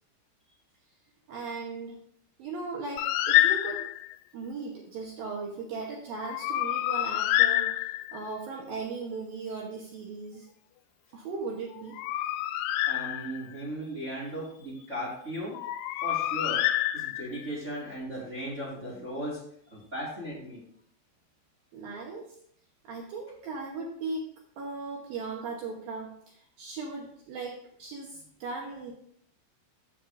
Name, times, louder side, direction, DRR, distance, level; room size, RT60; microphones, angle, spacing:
voice 1, 1.3-2.0 2.4-3.8 4.3-10.5 11.1-12.0 21.7-22.4 22.8-24.3 24.6-28.9, right 4 dB, 70° right, -1 dB, 2.3 m, -38 dB
Bird, 3.0-4.1 6.2-8.3 11.7-13.6 15.6-17.5, left 15 dB, 90° left, 3.0 m, -27 dB
voice 2, 12.9-15.5 16.0-16.6 16.9-19.4 19.6-20.6, equal, 40° right, -4 dB, 1.0 m, -37 dB
14.0 x 7.2 x 2.6 m, 0.67 s
omnidirectional pair, 5.3 m